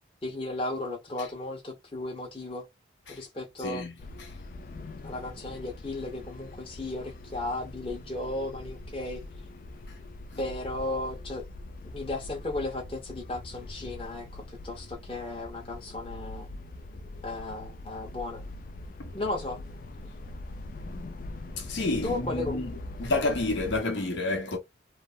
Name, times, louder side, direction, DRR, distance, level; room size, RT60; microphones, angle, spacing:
voice 1, 0.2-2.6 3.1-3.8 5.0-9.2 10.4-11.5 11.8-16.5 17.2-18.4 19.1-19.6 22.0-22.6, left 2 dB, 30° left, 0.9 m, -35 dB
voice 2, 3.6-4.3 10.3-10.4 19.0-19.1 21.6-22.7 23.0-24.6, left 2 dB, 70° left, 0.9 m, -30 dB
sound 1, 4.0-23.8, left 2 dB, 45° left, 0.4 m, -42 dB
3.2 x 2.0 x 2.3 m
head